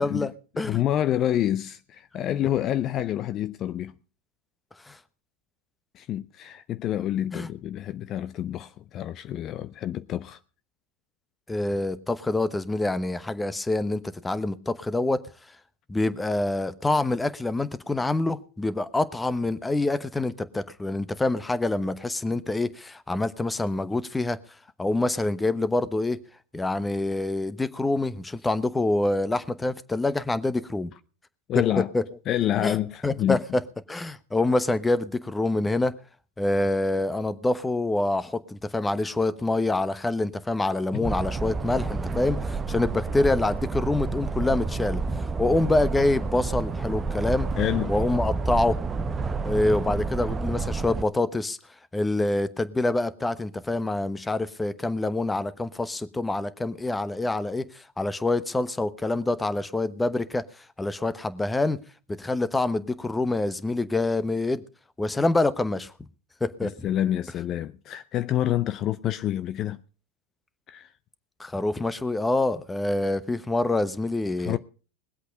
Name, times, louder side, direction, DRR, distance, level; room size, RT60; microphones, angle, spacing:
voice 1, 0.0-0.8 4.9-5.0 7.3-7.5 11.5-15.3 15.9-24.4 24.8-26.2 26.5-30.9 31.9-32.0 32.6-32.7 33.0-33.6 33.9-36.0 36.4-47.5 47.9-48.8 49.4-51.6 51.9-60.4 60.8-61.8 62.1-64.6 65.0-65.9 66.4-66.7 71.4-74.6, left 2 dB, 10° left, 1.0 m, -26 dB
voice 2, 0.6-4.0 5.9-10.4 31.5-31.9 32.3-33.4 40.9-41.1 47.6-47.9 66.6-69.8 70.7-70.9 74.4-74.6, left 12 dB, 40° left, 0.6 m, -27 dB
sound 1, 41.0-51.0, right 4 dB, 20° right, 1.0 m, -29 dB
21.0 x 8.2 x 5.2 m
hypercardioid pair, 90°, 0 cm